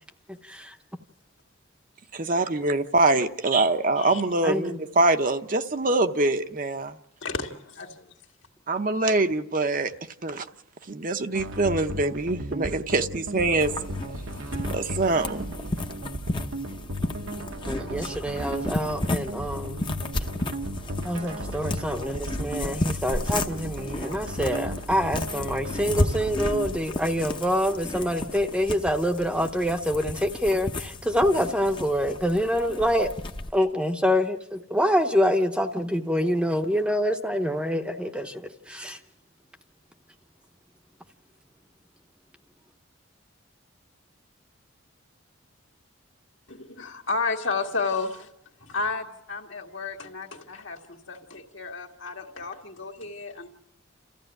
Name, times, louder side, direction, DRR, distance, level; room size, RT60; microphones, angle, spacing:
voice 1, 2.1-7.0 8.7-9.9 10.2-10.5 10.9-13.7 14.7-15.6, right 2 dB, 40° right, 0.8 m, -24 dB
voice 2, 4.4-4.8 17.7-19.9 21.0-33.1 33.5-39.0, equal, 5° right, 0.8 m, -26 dB
voice 3, 7.2-8.1 46.5-48.3 48.6-53.5, left 4 dB, 65° left, 2.0 m, -32 dB
sound 1, 11.3-26.8, right 1 dB, 75° right, 1.2 m, -35 dB
sound 2, 13.6-33.5, left 1 dB, 25° left, 0.8 m, -33 dB
30.0 x 14.5 x 9.1 m
head